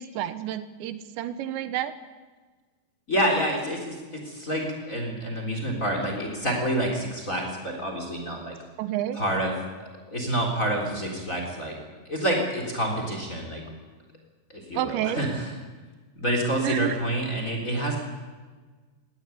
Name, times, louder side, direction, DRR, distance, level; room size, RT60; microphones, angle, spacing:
voice 1, 0.0-1.9 8.8-9.2 14.7-15.3 16.6-17.0, right 12 dB, 85° right, 11 dB, 3.4 m, -30 dB
voice 2, 3.1-8.6 9.1-9.5 9.8-11.8 12.1-13.6 14.5-15.5 16.2-18.0, right 1 dB, 20° left, 2 dB, 3.7 m, -28 dB
22.5 x 17.5 x 9.3 m, 1.4 s
omnidirectional pair, 5.1 m